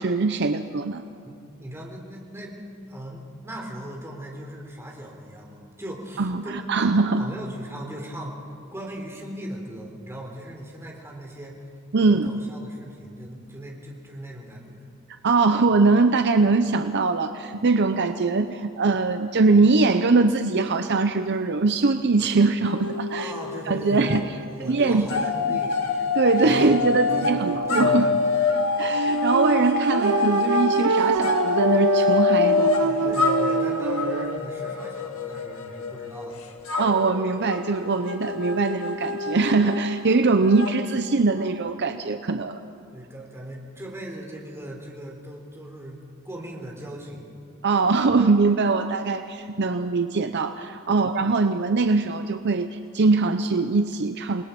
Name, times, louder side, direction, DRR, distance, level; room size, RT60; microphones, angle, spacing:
voice 1, 0.0-1.1 6.2-7.3 11.9-12.4 15.2-23.3 23.7-24.3 24.6-25.2 25.5-25.6 26.2-28.2 28.8-32.7 33.0-33.2 36.7-42.6 47.6-54.4, right 3 dB, 55° right, 8 dB, 0.7 m, -22 dB
voice 2, 1.2-6.7 7.2-8.5 8.7-11.6 12.1-14.8 23.2-26.1 26.4-28.5 32.5-36.4 42.9-47.3 50.9-51.1, right 1 dB, 10° right, -1 dB, 3.8 m, -38 dB
sound 1, 22.6-24.3 24.5-41.6, left 5 dB, 80° left, 1.7 m, -26 dB
sound 2, 27.1-34.4, right 7 dB, 80° right, 0.4 m, -26 dB
28.0 x 20.5 x 5.3 m, 2.4 s
head